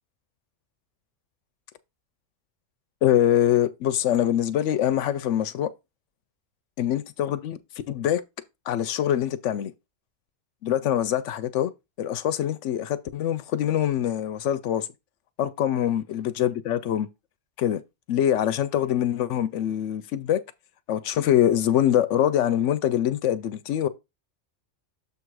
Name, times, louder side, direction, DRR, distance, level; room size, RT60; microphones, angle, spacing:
voice 1, 3.0-5.7 6.8-7.6 7.9-8.2 8.7-9.7 10.6-11.7 12.0-14.9 15.4-17.1 17.6-17.8 18.1-20.4 20.9-23.9, left 11 dB, 80° left, 0.9 m, -24 dB
7.0 x 3.6 x 4.7 m
omnidirectional pair, 1.2 m